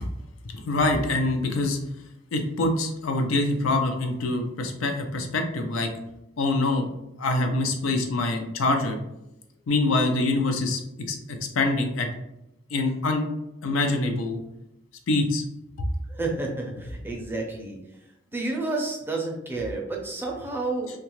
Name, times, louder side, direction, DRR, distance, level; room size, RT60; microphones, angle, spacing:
voice 1, 0.6-1.8 2.3-5.9 6.4-6.9 7.2-9.0 9.7-10.8 11.1-11.2 11.5-12.1 12.7-13.2 13.6-14.4 15.1-15.4 15.8-15.9, left 2 dB, 90° left, 4 dB, 0.5 m, -24 dB
voice 2, 16.1-17.8 18.3-20.9, right 2 dB, 10° right, 0 dB, 0.4 m, -30 dB
2.7 x 2.3 x 3.0 m, 0.90 s
head